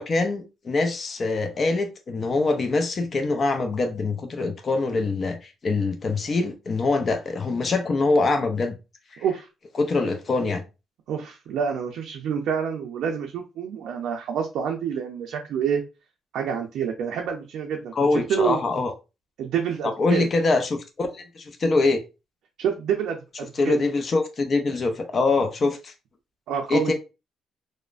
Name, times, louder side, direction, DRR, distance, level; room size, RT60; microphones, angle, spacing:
voice 1, 0.0-8.8 9.1-9.2 9.8-10.6 17.9-18.9 19.8-22.0 23.5-25.9 26.7-26.9, left 3 dB, 45° left, 0.5 m, -24 dB
voice 2, 9.2-9.5 11.1-15.8 16.3-17.9 18.3-18.6 19.4-20.3 22.6-23.8 26.5-26.9, right 7 dB, 80° right, 0.4 m, -27 dB
3.0 x 2.0 x 2.4 m
cardioid pair, 90°, 0 cm